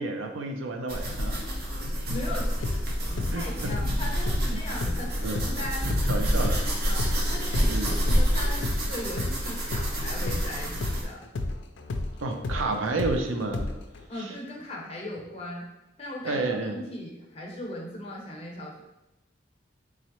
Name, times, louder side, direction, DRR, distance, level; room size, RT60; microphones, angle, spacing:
voice 1, 0.0-1.4 3.3-3.7 4.5-4.6 5.2-5.4 6.1-6.7 7.7-8.0 12.2-13.7 14.2-14.3 16.2-16.8, right 3 dB, 90° right, 4 dB, 0.5 m, -30 dB
sound 1, 0.9-11.0, equal, 55° right, 0.7 m, -28 dB
voice 2, 2.1-5.9 6.8-11.2 14.1-15.6 16.0-18.8, left 1 dB, 30° left, -2 dB, 0.8 m, -38 dB
sound 2, 2.6-10.5 10.8-14.0, left 2 dB, 70° left, 0.4 m, -32 dB
3.6 x 3.1 x 3.0 m, 0.94 s
head